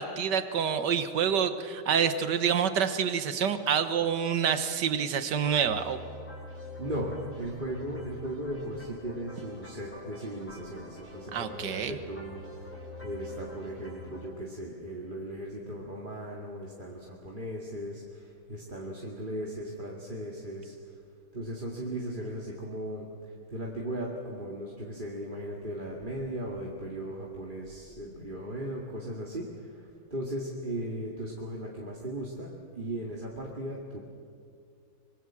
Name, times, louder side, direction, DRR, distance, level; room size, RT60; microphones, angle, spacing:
voice 1, 0.0-6.0 11.3-12.0, right 7 dB, 55° right, 10 dB, 1.8 m, -27 dB
sound 1, 5.4-14.2, left 1 dB, 5° left, 6.5 m, -46 dB
voice 2, 6.8-21.0 21.3-34.0, right 1 dB, 25° right, -2 dB, 2.4 m, -37 dB
25.5 x 23.5 x 7.5 m, 2.2 s
omnidirectional pair, 2.3 m